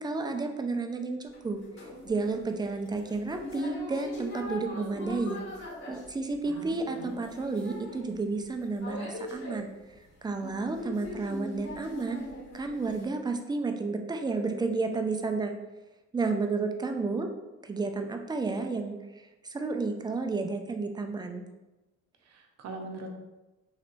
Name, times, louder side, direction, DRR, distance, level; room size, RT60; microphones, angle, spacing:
voice 1, 0.0-1.6 2.0-5.4 5.9-9.7 10.2-12.2 12.5-15.5 16.1-17.3 17.6-21.4, right 3 dB, 15° right, 5 dB, 0.3 m, -31 dB
sound 1, 1.3-13.0, left 1 dB, 65° left, 1.5 m, -42 dB
voice 2, 6.4-7.1 22.3-23.1, right 3 dB, 60° right, 3 dB, 0.7 m, -41 dB
3.2 x 3.0 x 2.5 m, 1.1 s
cardioid pair, 90°, 30 cm